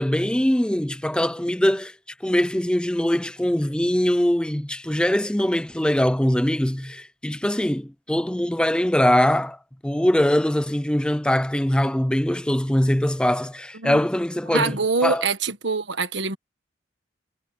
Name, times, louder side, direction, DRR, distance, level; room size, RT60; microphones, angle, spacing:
voice 1, 0.0-2.0 2.2-15.3, left 1 dB, 5° left, 0.4 m, -22 dB
voice 2, 14.5-16.4, right 4 dB, 70° right, 1.5 m, -24 dB
head